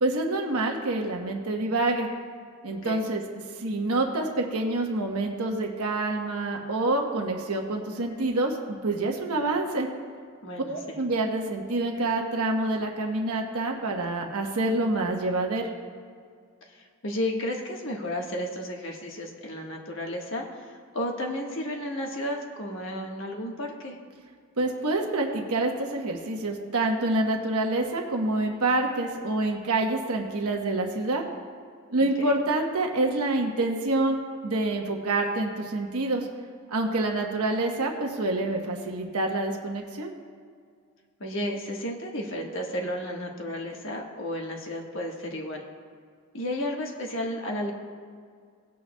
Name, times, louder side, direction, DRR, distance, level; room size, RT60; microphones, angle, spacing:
voice 1, 0.0-2.1 2.6-3.2 3.5-9.9 10.7-15.7 24.6-31.2 31.9-36.3 36.7-40.1, right 2 dB, 85° right, 2 dB, 1.1 m, -27 dB
voice 2, 10.4-10.9 16.7-24.0 32.0-32.3 41.2-45.6 46.3-47.7, left 1 dB, 55° left, 0 dB, 1.4 m, -33 dB
18.5 x 8.6 x 2.2 m, 2.1 s
head